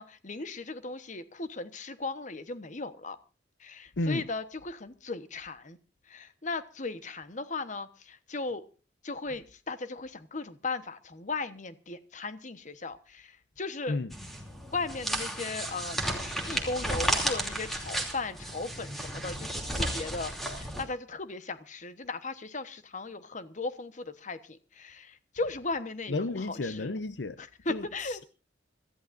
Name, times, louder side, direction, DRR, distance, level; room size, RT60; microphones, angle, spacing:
voice 1, 0.0-3.2 3.6-5.8 6.1-8.6 9.0-14.0 14.7-26.9 27.4-28.2, left 3 dB, 40° left, 1.1 m, -37 dB
sound 1, 14.1-20.8, right 1 dB, ahead, 2.9 m, -33 dB
voice 2, 26.1-27.4 27.7-28.2, left 2 dB, 65° left, 0.7 m, -32 dB
25.5 x 14.0 x 2.6 m
head